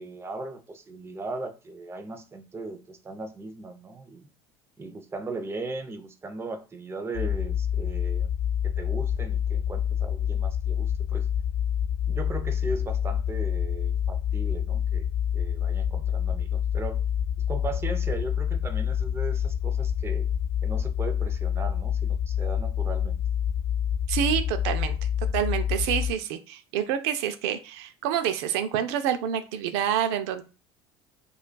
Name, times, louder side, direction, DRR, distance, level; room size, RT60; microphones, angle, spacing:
voice 1, 0.0-4.3 4.8-8.3 8.6-11.3 12.1-15.1 15.3-17.0 17.5-20.3 20.6-23.2, right 3 dB, 20° right, 0.6 m, -37 dB
sound 1, 7.1-26.1, left 9 dB, 70° left, 1.0 m, -27 dB
voice 2, 24.1-25.0 25.3-30.4, right 9 dB, 80° right, 0.5 m, -27 dB
5.0 x 2.4 x 2.2 m
supercardioid pair, 100°, 14 cm